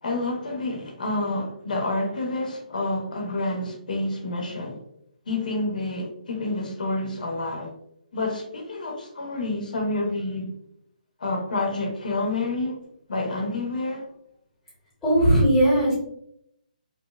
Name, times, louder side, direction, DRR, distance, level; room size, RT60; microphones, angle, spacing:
voice 1, 0.0-4.8 5.3-7.7 8.1-10.5 11.2-12.8 13.1-14.1, left 2 dB, 70° left, 0.6 m, -28 dB
voice 2, 15.0-15.9, right 1 dB, 5° left, 0.8 m, -18 dB
2.7 x 2.0 x 2.2 m
hypercardioid pair, 175°, 5 cm